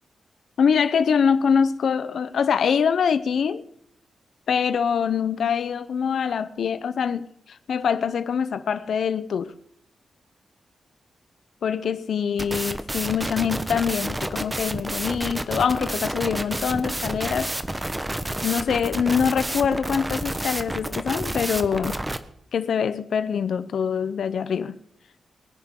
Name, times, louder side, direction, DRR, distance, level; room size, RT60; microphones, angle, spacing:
voice 1, 0.6-3.7 4.5-9.5 11.6-17.5 18.4-22.0 22.5-24.8, left 7 dB, 75° left, 0.7 m, -24 dB
sound 1, 12.4-22.2, right 1 dB, 15° right, 1.1 m, -29 dB
22.0 x 10.5 x 3.8 m
cardioid pair, 100°, 0 cm